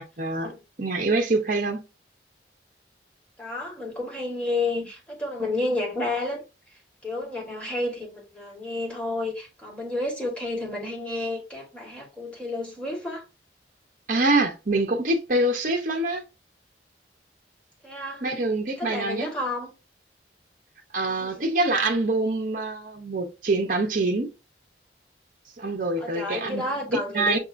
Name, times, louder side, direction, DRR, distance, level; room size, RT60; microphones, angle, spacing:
voice 1, 0.0-0.5 0.8-1.8 14.1-16.2 18.2-19.3 20.9-24.3 25.6-26.6 26.9-27.4, right 2 dB, 45° right, 0.7 m, -25 dB
voice 2, 3.4-6.4 7.0-13.2 17.8-18.2 18.8-19.7 21.1-21.5 26.0-27.4, left 2 dB, 5° left, 1.3 m, -31 dB
6.2 x 2.8 x 2.5 m
head